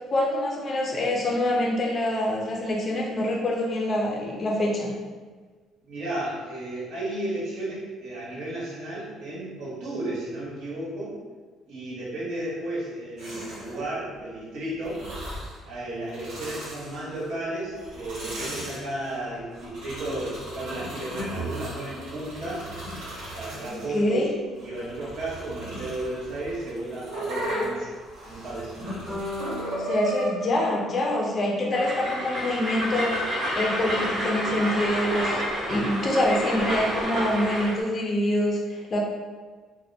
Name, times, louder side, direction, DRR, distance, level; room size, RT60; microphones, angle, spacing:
voice 1, 0.1-4.9 23.7-24.3 29.7-39.0, left 1 dB, 30° left, -2 dB, 0.3 m, -26 dB
voice 2, 5.8-11.1 11.7-15.0 15.6-22.7 23.3-24.3 24.6-28.0 28.2-29.1, right 1 dB, 65° right, -7 dB, 0.9 m, -33 dB
sound 1, 13.2-13.8 14.8-15.6 16.0-17.3 17.8-24.0 24.6-30.3, right 1 dB, 80° right, 1.1 m, -36 dB
sound 2, 29.1-33.2, left 1 dB, 5° left, 0.7 m, -40 dB
Train, 31.7-37.8, equal, 35° right, 0.6 m, -29 dB
2.4 x 2.0 x 2.6 m, 1.4 s
cardioid pair, 160°, 0 cm